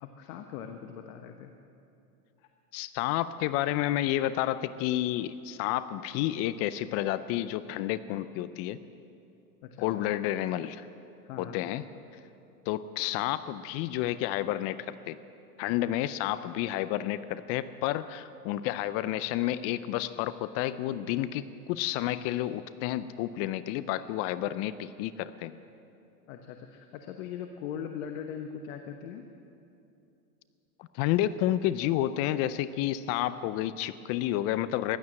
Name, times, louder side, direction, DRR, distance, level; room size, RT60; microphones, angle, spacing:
voice 1, 0.0-1.5 2.4-2.5 9.6-9.9 11.2-11.6 26.3-29.3, left 8 dB, 60° left, 6 dB, 1.2 m, -40 dB
voice 2, 2.7-8.8 9.8-10.9 11.4-11.8 12.7-15.2 15.6-25.6 30.8-35.0, left 13 dB, 35° left, 15 dB, 0.4 m, -30 dB
15.5 x 12.0 x 7.7 m, 2.7 s
hypercardioid pair, 105°, 47 cm